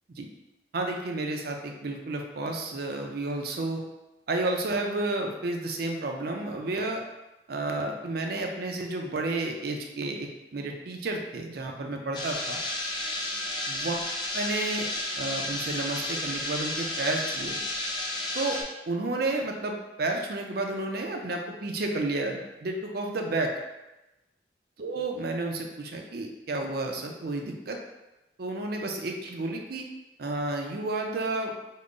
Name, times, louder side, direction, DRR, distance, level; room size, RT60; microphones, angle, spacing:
voice 1, 0.7-3.8 4.3-7.0 7.5-12.6 13.7-13.9 14.3-14.9 15.2-17.6 18.3-18.6 18.9-23.5 24.8-27.8 28.4-29.8 30.2-31.5, right 2 dB, 55° right, 2 dB, 0.5 m, -31 dB
sound 1, 12.1-18.6, left 1 dB, 25° left, 0.5 m, -32 dB
3.7 x 2.1 x 3.7 m, 0.99 s
head